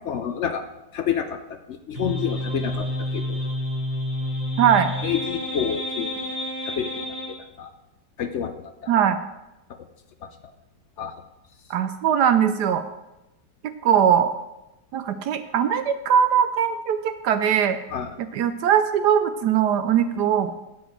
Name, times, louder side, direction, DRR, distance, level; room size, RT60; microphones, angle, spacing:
voice 1, 0.1-0.6 0.9-1.4 1.9-3.4 5.0-6.1 6.7-6.9 7.6-7.7 8.2-8.5 8.8-8.9 11.0-11.1 17.9-18.1, left 8 dB, 80° left, 8 dB, 0.6 m, -28 dB
sound 1, 1.9-7.4, left 1 dB, 20° right, 3.6 m, -29 dB
voice 2, 4.6-4.9 8.9-9.2 11.7-12.8 13.6-14.3 14.9-17.8 18.2-20.5, right 8 dB, 70° right, 10 dB, 1.1 m, -20 dB
8.0 x 7.8 x 7.6 m, 0.97 s
omnidirectional pair, 2.0 m